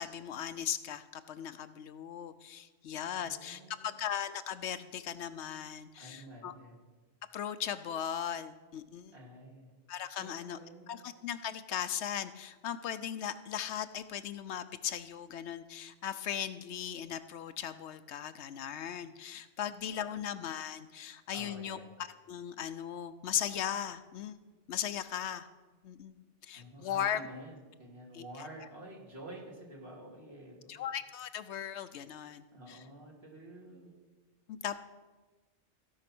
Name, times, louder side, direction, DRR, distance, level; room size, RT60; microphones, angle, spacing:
voice 1, 0.0-6.5 7.3-9.1 9.9-10.6 10.9-21.8 22.3-24.4 24.7-25.5 25.8-26.2 26.4-27.2 28.1-28.5 30.7-32.8 34.5-34.8, left 9 dB, 75° left, 12 dB, 0.9 m, -38 dB
voice 2, 3.1-4.0 6.0-6.8 9.1-9.7 10.2-11.1 20.1-20.3 21.3-21.9 26.5-30.8 32.5-33.9, right 1 dB, 60° right, -2 dB, 2.7 m, -50 dB
16.0 x 5.6 x 6.0 m, 1.3 s
omnidirectional pair, 1.2 m